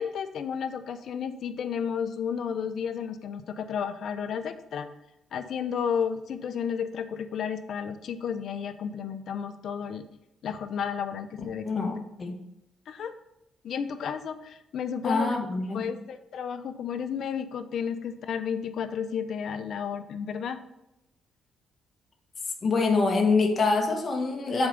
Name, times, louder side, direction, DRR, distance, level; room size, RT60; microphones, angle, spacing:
voice 1, 0.0-4.9 5.3-10.0 10.4-11.9 12.9-13.1 13.6-15.4 15.7-20.6, left 7 dB, 65° left, 10 dB, 0.6 m, -32 dB
voice 2, 11.6-12.4 15.0-15.9 22.6-24.7, left 3 dB, 35° left, 1 dB, 1.2 m, -25 dB
7.1 x 4.4 x 5.2 m, 0.90 s
cardioid pair, 90°, 0 cm